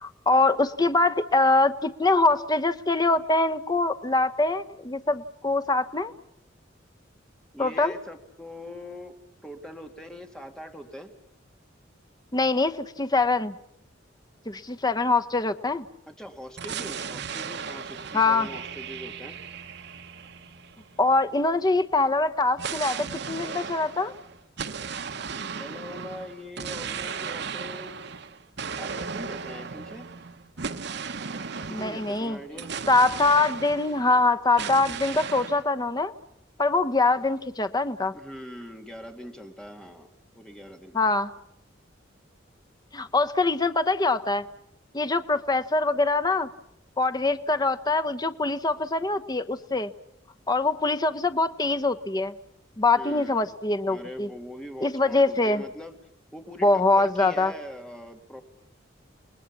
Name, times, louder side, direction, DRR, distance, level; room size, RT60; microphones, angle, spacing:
voice 1, 0.0-6.1 7.6-8.0 12.3-13.6 14.5-15.8 18.1-18.5 21.0-24.1 31.7-32.4 32.9-36.1 36.6-38.1 40.9-41.3 42.9-44.4 44.9-46.5 47.0-49.9 50.5-52.3 52.8-54.3 54.8-55.6 56.6-57.5, left 3 dB, 20° left, 9 dB, 0.9 m, -23 dB
voice 2, 7.5-9.1 9.4-11.1 16.1-19.3 25.5-28.0 28.7-30.1 31.7-32.7 37.1-37.2 38.1-41.0 52.9-53.4 53.9-56.0 56.3-58.4, left 1 dB, 5° left, 5 dB, 2.3 m, -42 dB
sound 1, 16.6-21.3 22.6-34.2 34.6-35.6, right 6 dB, 60° right, 1.1 m, -36 dB
30.0 x 19.5 x 7.2 m, 0.79 s
head